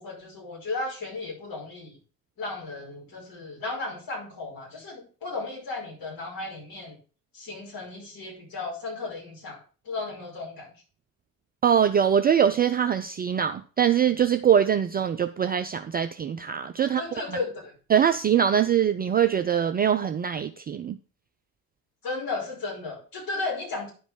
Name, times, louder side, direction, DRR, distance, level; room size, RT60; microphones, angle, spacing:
voice 1, 0.0-2.0 2.4-7.0 7.3-10.7 16.8-17.7 22.0-23.9, left 3 dB, 45° left, -2 dB, 5.5 m, -35 dB
voice 2, 11.6-17.0 17.9-21.0, right 8 dB, 20° right, 9 dB, 0.4 m, -23 dB
10.5 x 5.1 x 6.4 m, 0.38 s
figure-of-eight pair, 55°, 48 cm